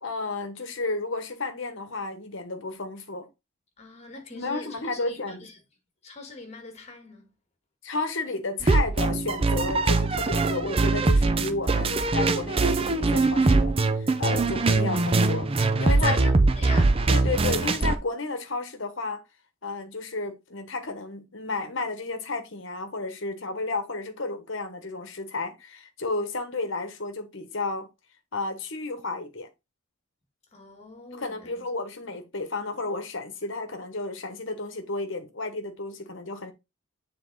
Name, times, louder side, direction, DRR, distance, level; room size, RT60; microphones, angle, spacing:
voice 1, 0.0-3.3 4.3-5.5 7.8-16.2 17.1-19.2 19.6-27.9 28.3-29.5 31.1-36.5, left 3 dB, 60° left, 1.1 m, -32 dB
voice 2, 3.8-5.6 6.0-7.3 11.9-12.1 16.0-17.0 30.5-31.6, left 3 dB, 30° left, 1.5 m, -40 dB
sound 1, 8.6-18.0, right 3 dB, 25° right, 0.4 m, -22 dB
7.1 x 3.7 x 3.9 m
head